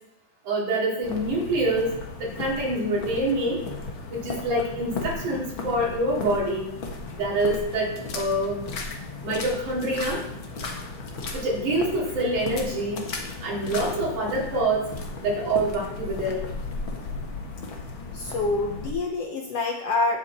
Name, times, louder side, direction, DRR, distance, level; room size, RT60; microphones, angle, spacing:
voice 1, 0.4-3.7 4.1-6.7 7.2-8.6 9.2-10.2 11.3-13.1 13.4-14.9 15.2-16.4, right 1 dB, 70° right, -4 dB, 4.7 m, -26 dB
sound 1, 1.0-18.9, left 3 dB, 50° left, 1.9 m, -35 dB
voice 2, 18.1-20.2, left 3 dB, 65° left, 2 dB, 1.6 m, -26 dB
14.5 x 8.5 x 4.3 m, 0.88 s
omnidirectional pair, 3.6 m